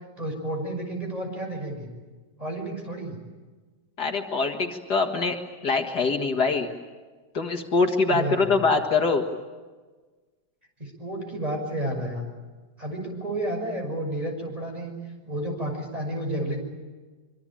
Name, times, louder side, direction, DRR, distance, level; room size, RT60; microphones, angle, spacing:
voice 1, 0.2-1.9 2.4-3.2 8.1-8.7 10.8-12.3 12.8-14.9 15.3-16.6, right 1 dB, 20° right, 2 dB, 6.3 m, -31 dB
voice 2, 4.0-5.4 5.6-6.7 7.3-9.3, left 4 dB, 65° left, 4 dB, 2.4 m, -23 dB
25.5 x 25.0 x 8.8 m, 1.3 s
omnidirectional pair, 1.9 m